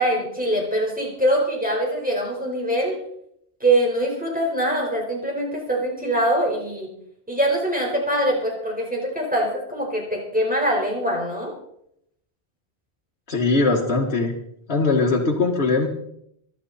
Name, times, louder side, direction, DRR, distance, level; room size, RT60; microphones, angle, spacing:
voice 1, 0.0-3.0 3.6-6.9 7.3-11.5, right 1 dB, 5° right, -1 dB, 4.6 m, -23 dB
voice 2, 13.3-14.3 14.7-15.9, left 3 dB, 65° left, -2 dB, 2.1 m, -20 dB
24.5 x 10.5 x 4.2 m, 0.75 s
omnidirectional pair, 1.1 m